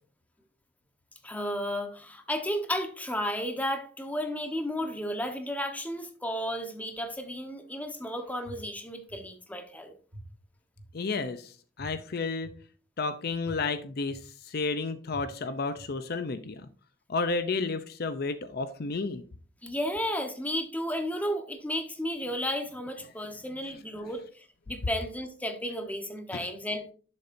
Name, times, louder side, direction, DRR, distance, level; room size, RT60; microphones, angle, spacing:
voice 1, 1.2-9.9 19.6-26.9, equal, 10° left, 1.1 m, -33 dB
sound 1, 8.4-8.5 9.1-9.2 10.1-10.2 10.8-10.9 11.8-11.9 12.4-12.5 13.4-13.5 14.1-14.2 15.1-15.2 15.8-15.9, equal, 65° right, 2.1 m, -45 dB
voice 2, 10.9-12.5 13.0-16.7 17.1-19.2 26.3-26.5, left 4 dB, 55° left, 0.6 m, -32 dB
11.0 x 6.6 x 2.7 m
head